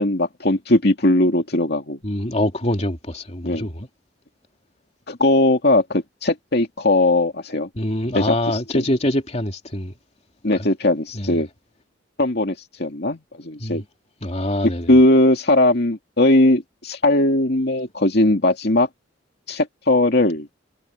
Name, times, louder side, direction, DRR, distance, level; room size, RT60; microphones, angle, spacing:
voice 1, 0.0-2.0 3.4-3.7 5.1-7.7 8.1-8.8 10.4-11.5 12.2-13.8 14.9-18.9 19.5-20.5, left 1 dB, 60° left, 2.4 m, -19 dB
voice 2, 2.0-3.9 7.7-9.9 10.5-10.7 11.1-11.4 13.6-13.8 14.2-14.9, left 1 dB, 35° left, 2.9 m, -24 dB
head